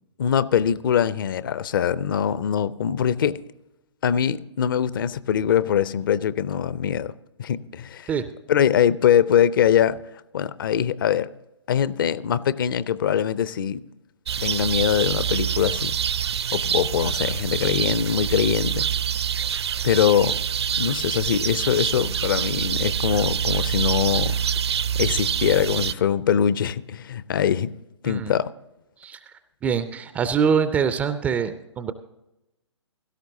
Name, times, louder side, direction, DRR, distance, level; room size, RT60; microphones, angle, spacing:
voice 1, 0.2-3.4 4.0-7.1 7.4-8.1 8.5-10.0 10.3-11.3 11.7-13.8 14.4-15.9 16.5-18.9 19.8-20.4 20.8-24.4 25.0-27.7 28.0-28.5, left 9 dB, 45° left, 0.5 m, -22 dB
sound 1, 14.3-25.9, right 8 dB, 60° right, 0.5 m, -26 dB
voice 2, 29.6-31.9, right 6 dB, 10° right, 0.3 m, -24 dB
17.0 x 13.0 x 2.7 m
figure-of-eight pair, 130°, 15 cm